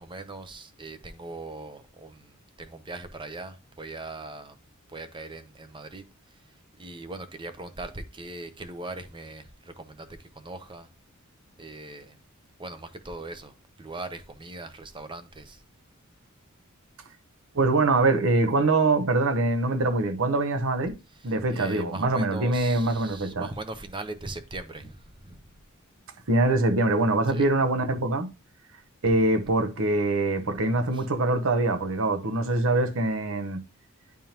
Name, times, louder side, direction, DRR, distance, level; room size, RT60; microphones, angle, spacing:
voice 1, 0.0-4.6 4.9-6.0 6.8-10.9 11.6-12.2 12.6-13.5 13.8-15.6 21.2-25.4 27.3-27.5 30.9-31.1, right 2 dB, 20° right, 0.7 m, -40 dB
voice 2, 17.5-20.9 21.2-23.5 26.3-28.3 29.0-33.6, right 2 dB, 65° right, 0.9 m, -24 dB
10.5 x 3.6 x 2.9 m
head